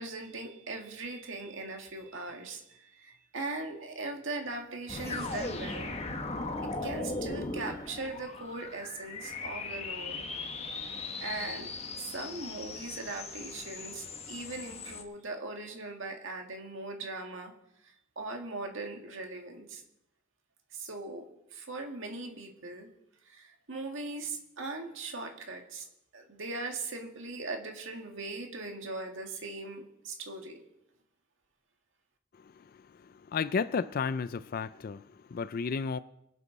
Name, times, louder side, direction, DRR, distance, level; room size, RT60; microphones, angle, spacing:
voice 1, 0.0-5.9 6.8-10.3 11.2-11.7 11.9-17.5 17.8-19.8 20.7-21.3 21.5-22.9 23.2-25.9 26.1-30.6, right 3 dB, 70° right, 2.1 m, -40 dB
sound 1, 4.9-15.0, left 3 dB, 30° left, 1.2 m, -38 dB
voice 2, 33.0-36.0, left 5 dB, 45° left, 0.4 m, -33 dB
24.0 x 8.3 x 4.1 m
head